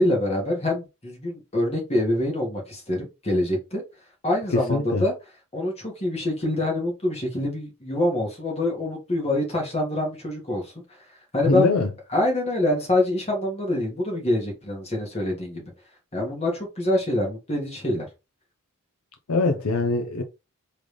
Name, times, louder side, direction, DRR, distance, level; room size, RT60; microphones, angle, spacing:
voice 1, 0.0-3.8 4.2-5.1 5.5-10.7 11.3-11.7 12.1-15.7 16.1-18.1, left 1 dB, 30° left, 1.8 m, -25 dB
voice 2, 4.5-5.0 11.5-11.9 19.3-20.2, left 3 dB, 85° left, 0.7 m, -23 dB
3.8 x 3.5 x 3.2 m
head